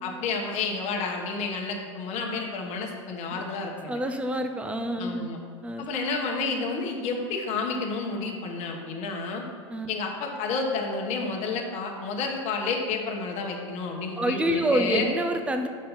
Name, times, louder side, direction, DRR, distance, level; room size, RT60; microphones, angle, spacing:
voice 1, 0.0-4.0 5.0-5.4 5.8-9.4 9.9-15.1, left 4 dB, 45° left, 1 dB, 1.1 m, -30 dB
voice 2, 3.9-5.3 5.6-5.9 9.7-9.9 14.2-15.7, right 1 dB, 5° right, 7 dB, 0.5 m, -27 dB
5.5 x 5.2 x 5.6 m, 2.1 s
hypercardioid pair, 100°, 16 cm